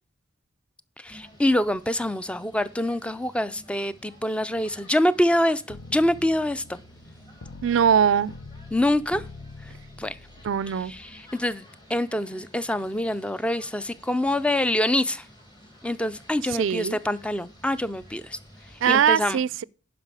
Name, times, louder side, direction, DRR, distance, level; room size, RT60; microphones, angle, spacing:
sound 1, 1.0-19.1, equal, 20° left, 2.2 m, -52 dB
voice 1, 1.0-6.8 8.7-9.2 10.0-10.2 10.9-11.6 11.9-15.2 15.8-18.4 18.9-19.4, left 1 dB, 5° left, 0.4 m, -25 dB
sound 2, 5.7-11.2, left 3 dB, 80° left, 0.7 m, -45 dB
voice 2, 7.6-8.3 10.4-10.9 16.5-17.0 18.8-19.6, right 8 dB, 70° right, 0.4 m, -21 dB
11.0 x 5.2 x 4.8 m
head